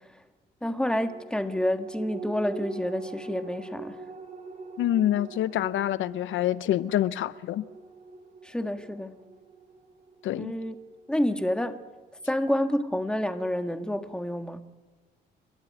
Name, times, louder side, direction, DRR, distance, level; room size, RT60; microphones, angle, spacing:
voice 1, 0.6-4.0 8.4-9.2 10.3-10.7 11.1-11.8 12.3-14.6, left 1 dB, 5° left, 1.6 m, -28 dB
sound 1, 0.8-11.6 12.0-12.1, right 3 dB, 40° right, 3.7 m, -43 dB
voice 2, 4.8-7.6 10.2-10.6, left 12 dB, 75° left, 0.6 m, -26 dB
28.5 x 13.5 x 9.5 m
cardioid pair, 90°, 20 cm